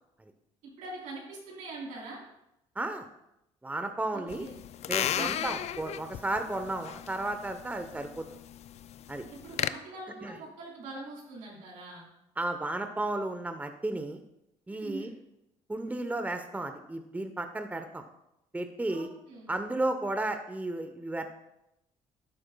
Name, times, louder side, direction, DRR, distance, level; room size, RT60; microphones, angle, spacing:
voice 1, 0.8-2.2 4.1-4.6 5.1-5.6 9.4-12.1 14.7-15.1 18.9-19.5, right 2 dB, 80° right, -3 dB, 4.0 m, -43 dB
voice 2, 2.8-3.1 3.6-4.4 4.9-8.3 9.1-9.2 10.2-10.4 12.4-14.2 14.7-15.1 15.7-18.0 18.5-19.1 19.5-21.3, right 2 dB, 10° right, 7 dB, 0.9 m, -33 dB
sound 1, 4.3-9.7, left 11 dB, 55° left, 0.4 m, -35 dB
12.5 x 9.6 x 2.3 m, 0.85 s
supercardioid pair, 70°, 13 cm